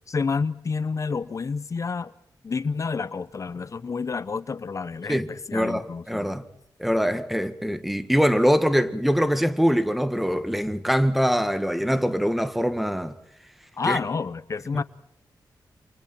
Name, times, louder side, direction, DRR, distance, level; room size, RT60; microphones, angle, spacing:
voice 1, 0.1-2.1 2.4-6.3 13.8-14.8, left 5 dB, 45° left, 0.9 m, -29 dB
voice 2, 5.1-6.4 6.8-13.1 13.9-14.0 14.7-14.8, equal, ahead, 1.9 m, -23 dB
29.0 x 28.5 x 4.5 m
wide cardioid pair, 120°, 7 cm